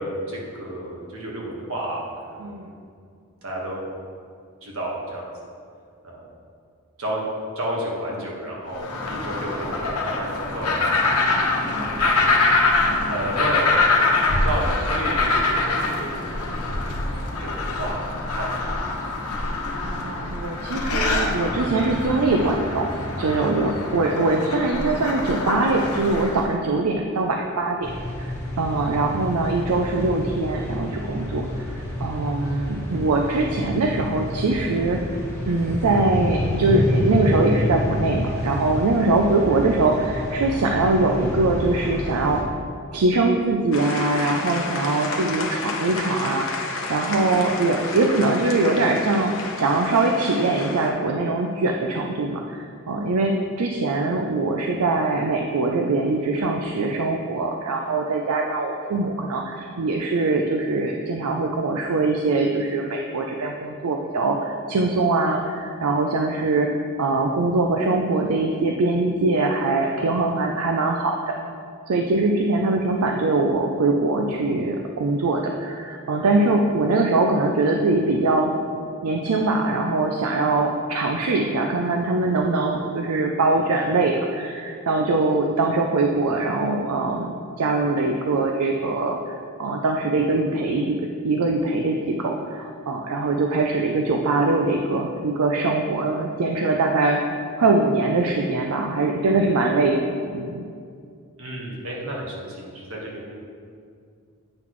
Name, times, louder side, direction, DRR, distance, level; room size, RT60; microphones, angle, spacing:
voice 1, 0.0-2.7 3.4-4.1 4.6-5.3 6.0-6.3 7.0-7.2 7.5-11.1 11.4-12.4 13.1-13.9 14.4-16.6 17.1-18.6 101.4-103.4, right 1 dB, 65° right, -3 dB, 1.5 m, -32 dB
sound 1, 8.7-26.5, left 3 dB, 90° left, 1.0 m, -24 dB
voice 2, 19.8-22.9 23.2-27.9 28.2-28.3 28.6-35.0 35.4-42.4 42.9-66.7 67.0-71.4 71.9-78.5 79.0-91.0 91.2-97.2 97.6-100.0 100.3-100.6, right 3 dB, 80° right, 2 dB, 0.5 m, -22 dB
sound 2, 27.8-42.4, left 1 dB, 15° left, 1.5 m, -29 dB
sound 3, 43.7-50.9, left 3 dB, 60° left, 0.9 m, -31 dB
8.7 x 5.9 x 3.1 m, 2.3 s
head